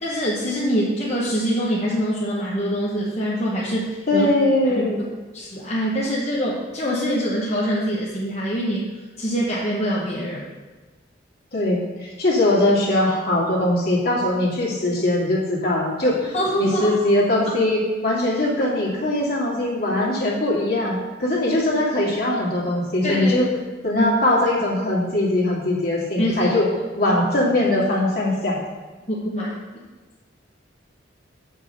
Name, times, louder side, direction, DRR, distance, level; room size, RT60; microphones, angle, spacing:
voice 1, 0.0-4.3 4.6-5.0 5.3-8.9 9.2-10.5 16.3-16.9 23.0-23.4 24.0-24.1 26.2-26.5 27.1-27.2 29.1-29.5, equal, 35° left, -6 dB, 1.2 m, -24 dB
voice 2, 4.1-5.0 11.5-23.5 23.8-26.7 27.0-28.6, left 1 dB, 55° left, -4 dB, 2.3 m, -21 dB
7.6 x 5.4 x 6.5 m, 1.3 s
head